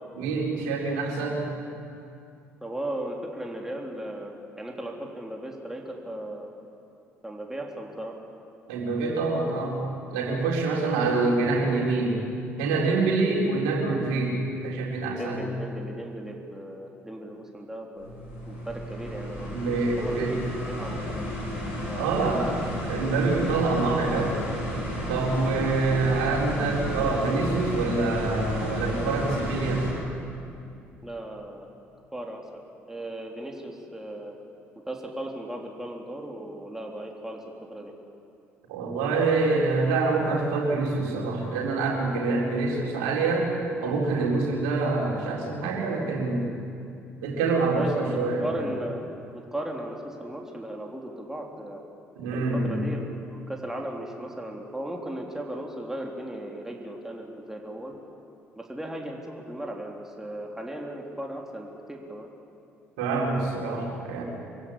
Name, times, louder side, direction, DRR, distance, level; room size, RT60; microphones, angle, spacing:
voice 1, 0.1-1.5 8.7-9.8 10.1-12.2 12.6-15.5 19.5-20.4 22.0-22.5 22.9-24.4 25.1-29.8 38.7-43.5 43.8-46.4 47.2-48.7 52.2-52.8 63.0-64.2, right 3 dB, 75° right, -2 dB, 4.1 m, -26 dB
voice 2, 2.6-6.5 7.2-8.1 15.2-18.1 18.5-20.4 20.7-21.3 21.9-22.8 31.0-31.7 32.1-32.6 32.9-34.4 34.9-37.4 37.7-37.9 47.7-48.1 48.4-51.8 52.3-57.9 58.6-62.3, right 1 dB, 5° right, 0 dB, 3.6 m, -37 dB
sound 1, 18.0-29.9, equal, 90° left, 5.8 m, -32 dB
25.0 x 16.0 x 8.7 m, 2.6 s
hypercardioid pair, 55°, 6 cm